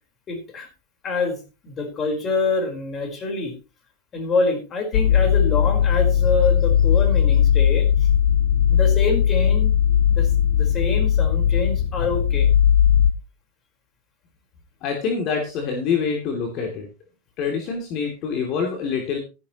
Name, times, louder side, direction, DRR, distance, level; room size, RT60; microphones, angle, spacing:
voice 1, 0.3-0.7 1.0-3.5 4.1-8.1 8.7-9.7 10.1-12.5, left 3 dB, 30° left, 5 dB, 4.5 m, -26 dB
sound 1, 4.9-13.1, left 9 dB, 65° left, 0.8 m, -18 dB
voice 2, 14.8-16.9 17.4-19.2, left 6 dB, 45° left, 2 dB, 2.9 m, -25 dB
13.0 x 11.5 x 3.1 m, 0.31 s
supercardioid pair, 130°, 0 cm